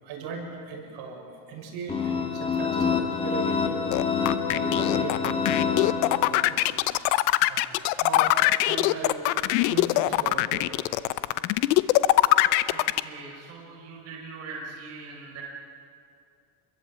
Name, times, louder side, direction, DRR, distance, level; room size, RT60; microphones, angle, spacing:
voice 1, 0.0-1.2 1.5-3.8 4.5-5.7 6.0-6.8 7.4-8.4 8.6-9.3 9.7-10.7 11.0-11.2, right 4 dB, 50° right, 1 dB, 6.7 m, -38 dB
sound 1, 1.9-6.6, left 6 dB, 10° left, 2.1 m, -27 dB
sound 2, 3.9-13.0, left 18 dB, 80° left, 0.9 m, -22 dB
voice 2, 12.7-15.4, right 4 dB, 30° right, -4 dB, 5.2 m, -41 dB
27.5 x 22.0 x 8.7 m, 2.4 s
cardioid pair, 160°, 48 cm